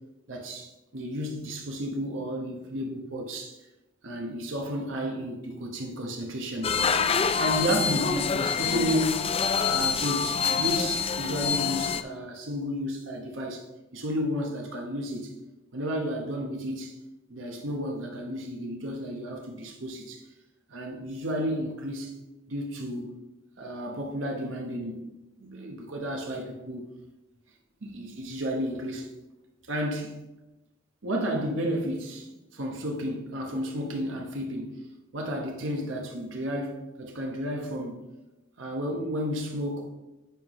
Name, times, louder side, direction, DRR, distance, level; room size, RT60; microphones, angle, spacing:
voice 1, 0.3-3.6 4.0-6.7 7.4-9.3 9.6-13.6 13.9-15.3 15.7-16.9 17.3-20.2 20.7-22.1 22.5-23.2 23.6-25.1 25.4-26.9 27.8-29.1 29.7-30.2 31.0-34.8 35.1-38.0 38.6-39.9, equal, 85° right, 1.0 m, -32 dB
sound 1, 6.6-12.0, left 6 dB, 30° left, 0.3 m, -26 dB
10.0 x 5.7 x 3.1 m
head